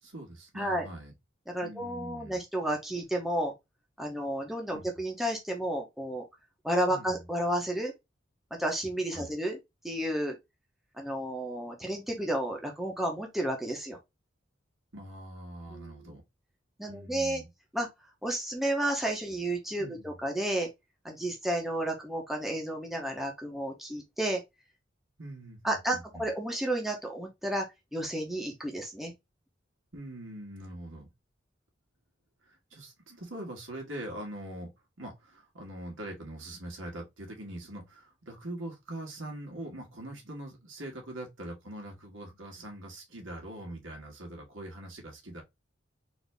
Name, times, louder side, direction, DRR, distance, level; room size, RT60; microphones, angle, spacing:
voice 1, 0.0-1.1 1.6-2.4 4.7-4.9 6.9-7.3 9.1-9.3 14.9-16.2 16.8-17.5 19.8-20.1 25.2-26.2 29.9-31.1 32.5-34.7 35.0-45.4, right 1 dB, 90° right, 1.8 m, -43 dB
voice 2, 0.5-0.8 1.5-3.5 4.0-6.2 6.6-7.9 8.6-9.6 9.8-10.4 11.0-14.0 15.7-16.1 16.8-17.4 17.7-17.9 18.2-20.7 21.0-24.4 25.6-27.7 27.9-29.1, right 1 dB, ahead, 0.9 m, -32 dB
4.1 x 2.8 x 3.4 m
head